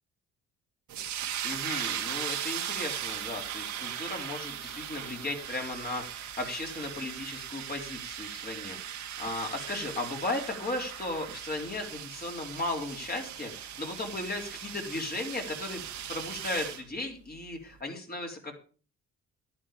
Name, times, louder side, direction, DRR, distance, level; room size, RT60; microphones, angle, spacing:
sound 1, 0.9-16.8, right 10 dB, 70° right, 1.7 m, -38 dB
voice 1, 1.4-15.8 16.1-18.5, left 2 dB, 30° left, 2 dB, 3.5 m, -36 dB
11.0 x 10.5 x 5.0 m, 0.39 s
cardioid pair, 90°, 30 cm